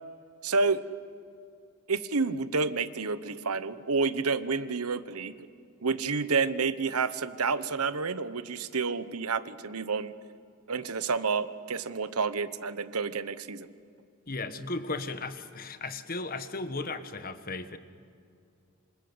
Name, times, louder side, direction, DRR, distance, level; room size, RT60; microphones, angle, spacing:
voice 1, 0.4-0.8 1.9-5.4 5.8-10.1 10.7-13.7, right 4 dB, 85° right, 13 dB, 1.2 m, -29 dB
voice 2, 14.3-17.8, left 3 dB, 40° left, 10 dB, 1.4 m, -35 dB
27.0 x 26.5 x 8.1 m, 2.5 s
head